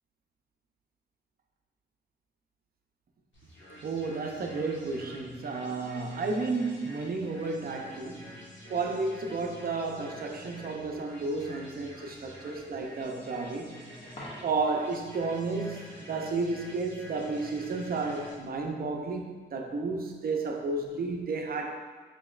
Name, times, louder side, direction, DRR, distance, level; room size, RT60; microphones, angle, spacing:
sound 1, 3.3-18.3, equal, 85° left, 1.4 m, -48 dB
voice 1, 3.8-8.3 8.7-13.8 14.4-21.7, right 3 dB, 55° right, 0.5 m, -32 dB
Coin (dropping), 14.1-14.9 21.0-21.2, left 1 dB, 30° left, 0.6 m, -45 dB
5.0 x 3.0 x 2.3 m
wide cardioid pair, 110°, 18 cm